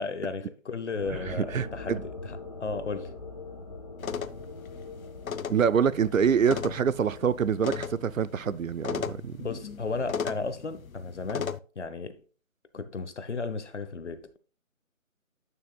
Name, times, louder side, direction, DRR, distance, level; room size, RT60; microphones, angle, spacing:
voice 1, 0.0-3.1 9.4-12.2 12.7-14.4, left 4 dB, 60° left, 0.9 m, -35 dB
sound 1, 1.0-7.9, left 3 dB, 30° left, 1.2 m, -43 dB
voice 2, 1.3-2.0 5.5-9.5, right 7 dB, 75° right, 0.6 m, -26 dB
sound 2, 4.0-11.6, left 6 dB, 90° left, 0.7 m, -37 dB
8.9 x 6.9 x 2.2 m
figure-of-eight pair, 170°, 40 cm